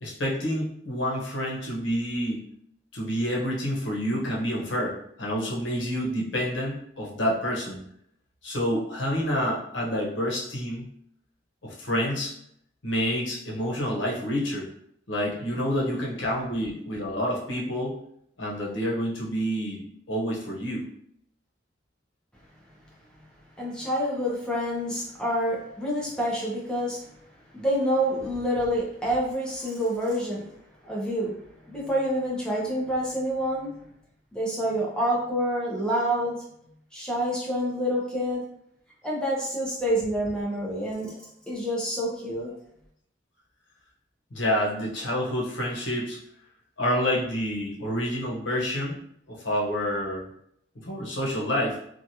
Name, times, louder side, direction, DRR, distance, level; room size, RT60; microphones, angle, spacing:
voice 1, 0.0-2.4 2.9-7.8 8.4-10.9 11.6-12.3 12.8-14.7 15.1-17.9 18.4-20.8 44.3-46.2 46.8-49.0 49.3-50.2 50.9-51.8, equal, 85° left, -3 dB, 0.9 m, -28 dB
voice 2, 23.6-27.0 27.5-30.5 30.8-31.4 31.6-33.9 34.3-36.4 36.9-38.4 39.0-41.1 41.5-42.5, equal, 5° left, -4 dB, 0.9 m, -27 dB
3.1 x 2.4 x 2.7 m, 0.71 s
head